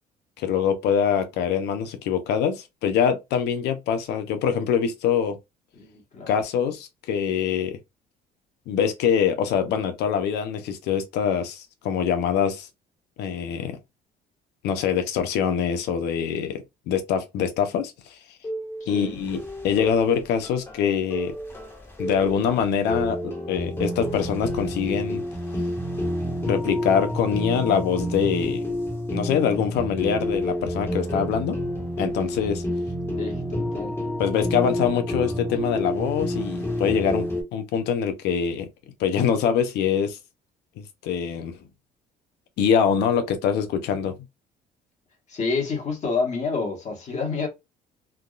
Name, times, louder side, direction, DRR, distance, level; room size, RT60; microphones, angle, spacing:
voice 1, 0.4-5.4 6.3-7.8 8.7-12.7 13.2-13.8 14.6-18.2 18.9-21.3 22.0-25.2 26.5-28.6 29.1-31.6 32.0-32.6 34.2-38.7 39.0-40.2 40.8-41.6 42.6-44.2, left 7 dB, 80° left, 0.7 m, -24 dB
voice 2, 5.8-6.3 18.8-19.2 33.2-33.9 45.3-47.5, left 4 dB, 45° left, 1.3 m, -28 dB
sound 1, 18.4-37.4, equal, 15° left, 1.1 m, -29 dB
3.5 x 2.3 x 2.4 m
cardioid pair, 110°, 17 cm